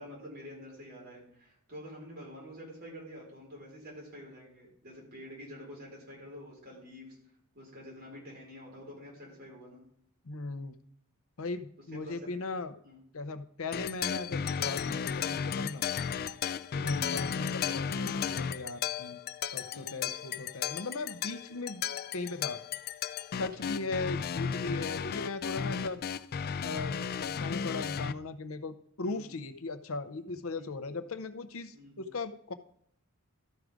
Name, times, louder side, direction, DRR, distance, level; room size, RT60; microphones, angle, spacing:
voice 1, 0.0-7.2 7.5-9.8 11.9-12.2 12.8-13.0 19.7-20.1 23.6-23.8 29.0-29.3 30.5-30.9 31.7-32.0, equal, 50° right, -3 dB, 4.6 m, -48 dB
voice 2, 10.2-10.8 11.4-12.8 13.1-15.8 16.7-19.2 19.5-21.8 22.1-22.6 23.3-26.0 26.6-32.5, left 3 dB, 70° left, 11 dB, 0.7 m, -38 dB
sound 1, 13.7-28.1, left 7 dB, 45° left, 0.3 m, -34 dB
13.0 x 4.8 x 5.1 m, 0.68 s
head